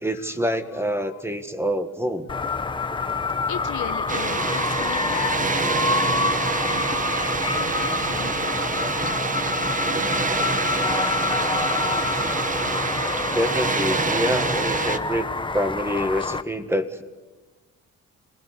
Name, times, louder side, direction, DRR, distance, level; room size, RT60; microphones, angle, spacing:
voice 1, 0.0-2.3 13.3-15.3 15.5-17.0, equal, 10° right, 9 dB, 1.7 m, -26 dB
voice 2, 0.7-1.2 3.5-10.3, left 11 dB, 80° left, 10 dB, 1.3 m, -38 dB
sound 1, 2.3-16.4, left 4 dB, 15° left, 0.9 m, -27 dB
Water, 4.1-15.0, right 4 dB, 25° right, 1.1 m, -26 dB
27.0 x 19.0 x 8.4 m, 1.2 s
cardioid pair, 90°, 30 cm